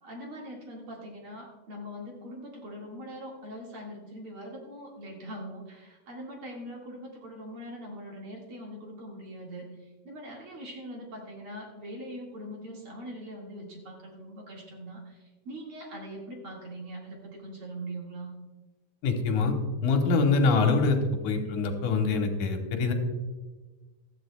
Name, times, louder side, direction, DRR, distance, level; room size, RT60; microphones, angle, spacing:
voice 1, 0.0-9.7 10.0-18.3, equal, 50° right, -2 dB, 2.6 m, -42 dB
voice 2, 19.0-19.6 19.8-21.0 21.2-22.9, left 4 dB, 85° left, 4 dB, 2.6 m, -24 dB
16.5 x 12.5 x 2.3 m, 1.3 s
omnidirectional pair, 3.4 m